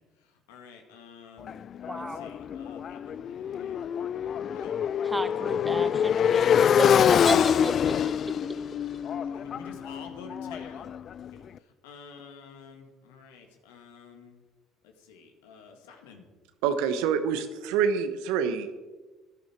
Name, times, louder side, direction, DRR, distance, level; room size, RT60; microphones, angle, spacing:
voice 1, 0.0-1.6 1.9-3.8 4.4-4.8 9.2-11.0 11.2-14.5 14.8-16.3, left 5 dB, 90° left, 4 dB, 2.0 m, -49 dB
Motorcycle, 1.5-11.3, left 8 dB, 50° left, 0.3 m, -25 dB
voice 2, 1.9-2.2 5.0-8.1, right 1 dB, 10° right, 9 dB, 1.3 m, -33 dB
voice 3, 16.6-18.8, right 7 dB, 80° right, 10 dB, 1.1 m, -26 dB
13.5 x 11.5 x 4.6 m, 1.3 s
supercardioid pair, 70°, 0 cm